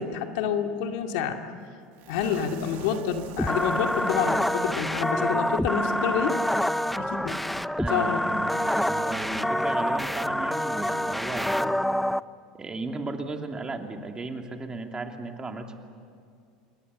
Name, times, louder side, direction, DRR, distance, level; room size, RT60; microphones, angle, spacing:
voice 1, 0.0-1.4 2.1-6.4 7.0-7.4 7.9-8.2, left 7 dB, 70° left, 4 dB, 2.3 m, -28 dB
sound 1, 2.0-5.2 5.4-5.6 6.0-6.1, right 12 dB, 60° right, 1.7 m, -45 dB
sound 2, 3.4-12.2, equal, ahead, 0.5 m, -27 dB
voice 2, 7.8-11.8 12.5-15.8, right 3 dB, 20° right, 4 dB, 2.9 m, -35 dB
27.5 x 22.0 x 8.4 m, 2.3 s
hypercardioid pair, 95°, 4 cm